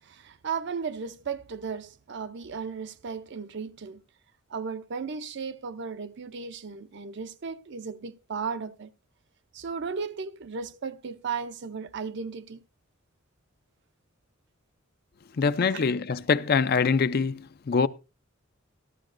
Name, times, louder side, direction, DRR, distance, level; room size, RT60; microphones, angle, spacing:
voice 1, 0.0-4.0 4.5-8.9 9.5-12.6 15.7-15.8, right 5 dB, 60° right, 0.5 m, -35 dB
voice 2, 15.4-17.9, left 5 dB, 50° left, 0.4 m, -24 dB
13.5 x 12.5 x 2.5 m
head